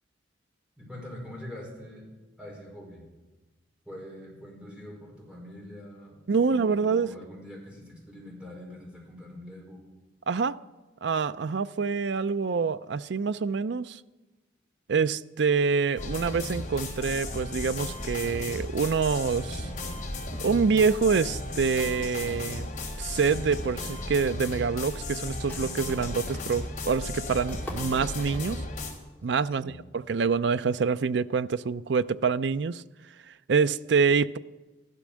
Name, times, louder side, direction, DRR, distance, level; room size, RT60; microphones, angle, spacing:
voice 1, 0.8-2.1 2.4-3.1 3.8-9.8 29.6-29.8, left 1 dB, 5° right, 5.0 m, -44 dB
voice 2, 6.3-7.1 10.3-10.6 11.0-14.0 14.9-19.7 20.4-22.7 23.0-28.6 29.2-32.8 33.5-34.4, right 5 dB, 65° right, 0.4 m, -26 dB
sound 1, 16.0-28.9, left 2 dB, 40° left, 3.4 m, -35 dB
sound 2, 25.3-28.9 29.2-29.3 29.7-30.2, left 1 dB, 10° left, 2.0 m, -45 dB
14.5 x 12.0 x 6.3 m
head